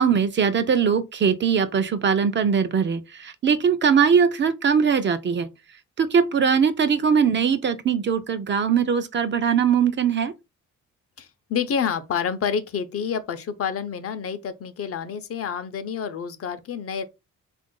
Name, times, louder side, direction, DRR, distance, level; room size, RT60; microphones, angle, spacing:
voice 1, 0.0-5.5 6.0-10.3, right 6 dB, 40° right, 0.5 m, -21 dB
voice 2, 11.2-17.0, left 7 dB, 50° left, 0.6 m, -28 dB
3.4 x 2.5 x 3.7 m
cardioid pair, 90°, 30 cm